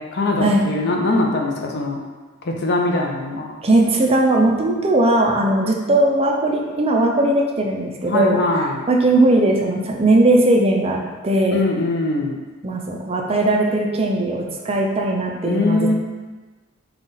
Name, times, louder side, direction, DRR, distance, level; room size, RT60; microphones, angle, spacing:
voice 1, 0.0-2.0 2.4-3.5 8.1-8.8 11.5-12.4 15.4-15.9, left 2 dB, 55° left, 1 dB, 0.6 m, -21 dB
voice 2, 3.6-8.4 8.9-11.6 12.6-15.9, right 2 dB, 30° right, 0 dB, 0.5 m, -18 dB
5.5 x 2.4 x 3.9 m, 1.3 s
head